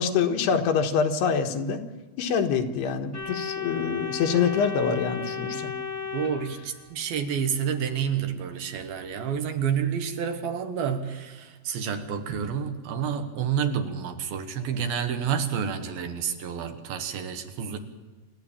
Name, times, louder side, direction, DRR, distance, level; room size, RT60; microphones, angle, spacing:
voice 1, 0.0-1.9 2.2-5.7, left 6 dB, 90° left, 4 dB, 3.5 m, -25 dB
Organ, 3.1-7.1, left 6 dB, 10° left, 1.1 m, -34 dB
voice 2, 6.1-17.8, right 7 dB, 70° right, 7 dB, 3.1 m, -29 dB
27.5 x 13.0 x 8.8 m, 1.3 s
omnidirectional pair, 4.6 m